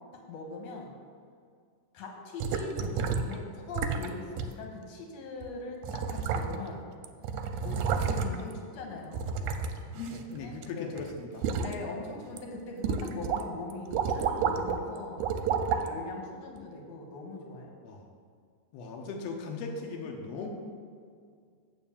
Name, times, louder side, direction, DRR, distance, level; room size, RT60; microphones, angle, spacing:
voice 1, 0.3-0.9 1.9-6.8 7.6-9.4 10.4-10.9 11.6-15.2 15.6-17.7, left 3 dB, 65° left, 1 dB, 2.0 m, -41 dB
sound 1, 2.4-3.4 3.7-4.1 4.4-4.5 5.4-5.5 5.8-6.8 7.0-8.5 9.1-10.7 11.0-11.7 12.2-12.4 12.8-13.4 13.7-14.8 15.2-15.9 16.6-16.7, right 6 dB, 80° right, 1.8 m, -30 dB
voice 2, 9.9-11.5 17.8-18.1 18.7-20.5, left 4 dB, 80° left, 1 dB, 1.5 m, -38 dB
7.7 x 4.6 x 7.0 m, 2.1 s
omnidirectional pair, 3.8 m